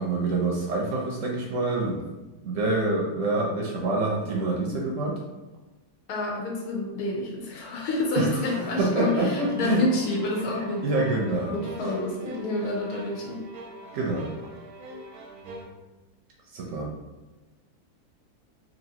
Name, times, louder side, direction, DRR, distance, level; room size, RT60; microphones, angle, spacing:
voice 1, 0.0-2.1 2.4-5.2 8.1-8.4 8.8-9.8 10.6-11.9 13.9-14.3 16.5-16.9, right 2 dB, 70° right, -2 dB, 0.8 m, -26 dB
voice 2, 6.1-10.8 11.5-13.4, left 2 dB, 80° left, -2 dB, 1.1 m, -28 dB
sound 1, 8.4-15.7, right 1 dB, 85° right, 1.1 m, -41 dB
3.0 x 2.6 x 2.7 m, 1.1 s
omnidirectional pair, 1.6 m